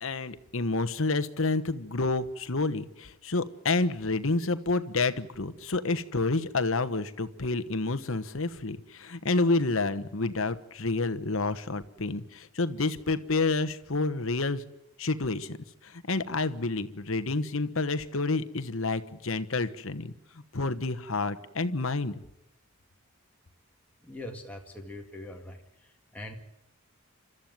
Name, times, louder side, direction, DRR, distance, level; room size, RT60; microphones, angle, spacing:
voice 1, 0.0-14.6 15.0-15.6 15.8-20.1 20.5-22.2, left 3 dB, 65° left, 12 dB, 1.2 m, -29 dB
voice 2, 24.0-25.6 26.1-26.3, left 1 dB, 5° left, 0 dB, 2.0 m, -41 dB
29.5 x 13.5 x 9.3 m, 0.90 s
head